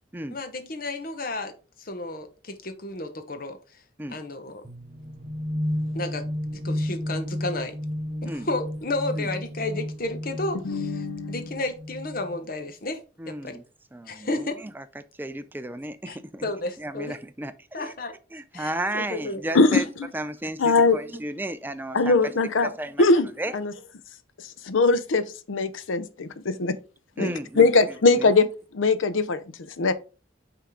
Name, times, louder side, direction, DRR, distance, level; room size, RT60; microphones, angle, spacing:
voice 1, 0.3-1.5 1.8-3.6 4.1-4.6 5.9-6.3 6.6-7.7 8.2-13.0 13.3-13.6 14.1-14.6 16.1-17.2 17.7-18.1 18.5-19.4 27.3-27.4, left 2 dB, 45° left, 0.9 m, -32 dB
sound 1, 4.6-12.4, left 1 dB, 35° right, 0.8 m, -32 dB
voice 2, 10.6-11.5 19.5-19.8 20.6-21.0 21.9-22.7 23.0-23.3 23.5-23.7 24.6-26.8 27.2-28.5 28.7-29.4 29.8-29.9, left 3 dB, 80° left, 0.6 m, -21 dB
voice 3, 13.2-13.6 13.9-16.4 16.8-17.9 18.3-19.8 20.1-23.0 23.4-23.6 27.2-27.7 28.1-28.3, right 1 dB, 10° right, 0.4 m, -33 dB
5.7 x 3.7 x 4.7 m
head